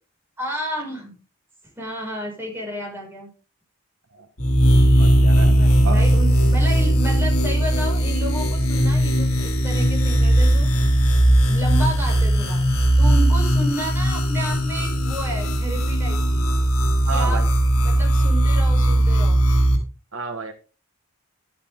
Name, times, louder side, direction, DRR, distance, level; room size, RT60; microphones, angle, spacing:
voice 1, 0.4-1.2 1.8-3.3 5.4-10.7 11.3-12.7 13.0-16.5 17.1-17.5 17.8-19.5, equal, 10° right, -2 dB, 5.7 m, -31 dB
sound 1, 4.4-19.8, right 1 dB, 90° left, 5.0 m, -18 dB
voice 2, 5.0-5.5 5.8-6.0 17.1-17.5 20.1-20.5, right 4 dB, 70° right, 6 dB, 1.5 m, -30 dB
11.5 x 11.0 x 3.7 m, 0.34 s
head